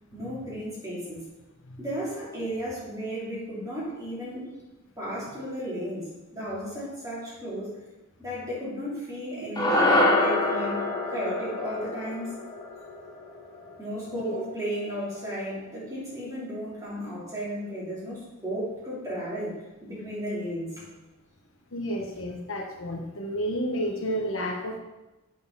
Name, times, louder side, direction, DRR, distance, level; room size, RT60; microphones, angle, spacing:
voice 1, 0.1-1.2 1.8-4.5 5.0-7.7 8.2-10.8 11.1-12.3 13.8-20.8, equal, 15° right, -8 dB, 3.1 m, -34 dB
sound 1, 9.6-14.0, left 2 dB, 20° left, 1.0 m, -26 dB
voice 2, 14.1-14.4 21.7-24.8, equal, 70° left, 1 dB, 1.1 m, -31 dB
8.4 x 4.7 x 5.5 m, 1.0 s
head